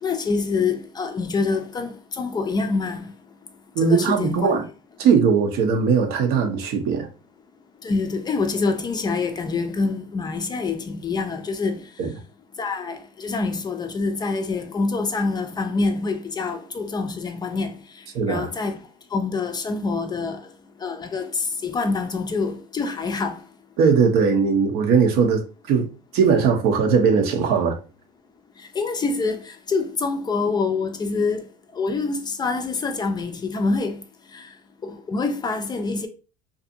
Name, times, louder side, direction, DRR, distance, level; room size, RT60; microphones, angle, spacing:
voice 1, 0.0-3.1 3.8-4.6 7.8-11.9 12.6-18.8 19.1-20.5 20.8-23.4 28.6-31.5 31.7-34.0 34.3-34.5 34.8-36.1, left 4 dB, 25° left, 0.4 m, -26 dB
voice 2, 3.8-4.6 5.0-7.1 12.0-12.1 18.1-18.5 23.8-25.9 26.1-27.8, right 5 dB, 60° right, 0.7 m, -19 dB
2.6 x 2.4 x 2.6 m
supercardioid pair, 100°, 18 cm